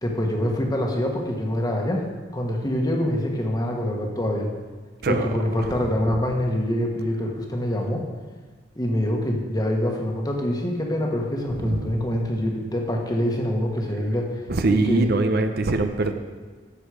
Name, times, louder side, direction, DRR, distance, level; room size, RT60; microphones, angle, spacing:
voice 1, 0.0-2.1 2.3-4.5 5.1-8.1 8.8-14.4 14.7-15.1, equal, 20° left, 1 dB, 1.4 m, -25 dB
voice 2, 14.5-16.1, right 2 dB, 55° right, 7 dB, 0.7 m, -23 dB
11.0 x 7.4 x 4.9 m, 1.4 s
head